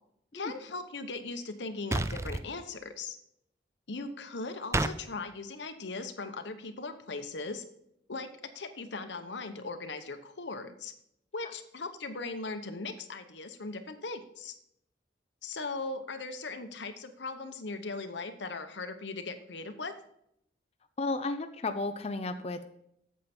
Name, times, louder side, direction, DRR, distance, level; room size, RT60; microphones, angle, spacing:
voice 1, 0.3-3.2 3.9-7.6 8.1-8.3 8.5-10.9 11.3-14.5 15.4-19.9, left 3 dB, 80° left, 8 dB, 1.0 m, -39 dB
sound 1, 1.9-2.5 4.7-5.0, right 2 dB, 15° right, 0.4 m, -29 dB
voice 2, 21.0-22.7, left 3 dB, 35° left, 7 dB, 0.5 m, -33 dB
8.7 x 7.6 x 4.3 m, 0.74 s
head